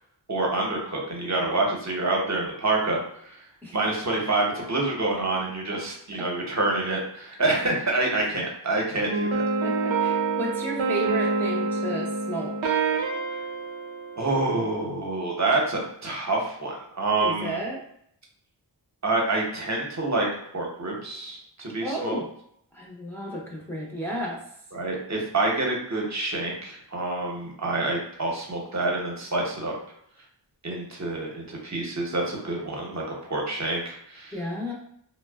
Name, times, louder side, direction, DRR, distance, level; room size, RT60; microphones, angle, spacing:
voice 1, 0.3-3.0 3.7-9.4 14.2-17.6 19.0-20.3 20.5-22.2 24.7-29.7 30.6-33.0 33.3-34.3, right 2 dB, 40° right, -1 dB, 0.8 m, -27 dB
sound 1, 9.1-14.7, right 4 dB, 80° right, 0.5 m, -27 dB
voice 2, 9.6-12.6 17.2-17.8 21.8-22.3 22.7-24.4 34.3-34.7, right 1 dB, 5° left, -4 dB, 0.6 m, -33 dB
2.5 x 2.1 x 2.3 m, 0.70 s
wide cardioid pair, 40°, 45 cm